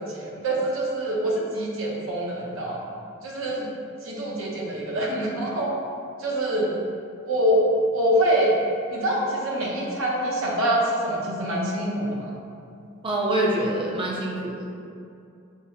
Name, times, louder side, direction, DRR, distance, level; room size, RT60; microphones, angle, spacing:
voice 1, 0.0-2.8 3.2-3.7 4.0-5.7 6.2-6.8 7.2-7.7 7.9-8.5 8.9-12.3, right 1 dB, 80° right, -3 dB, 0.7 m, -25 dB
voice 2, 13.0-14.7, right 1 dB, 25° right, -3 dB, 0.5 m, -25 dB
5.4 x 2.0 x 2.7 m, 2.5 s
head